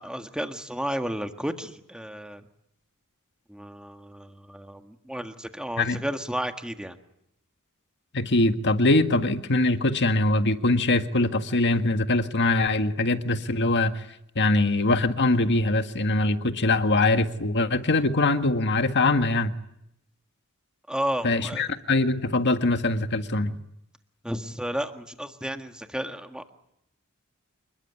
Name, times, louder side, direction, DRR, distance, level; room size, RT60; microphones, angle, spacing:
voice 1, 0.0-2.4 3.5-7.0 20.9-21.7 24.2-26.5, equal, 5° right, 6 dB, 1.7 m, -32 dB
voice 2, 8.1-13.9 14.4-19.5 21.2-23.6, left 2 dB, 55° left, 8 dB, 1.7 m, -23 dB
28.0 x 21.5 x 9.8 m, 0.79 s
head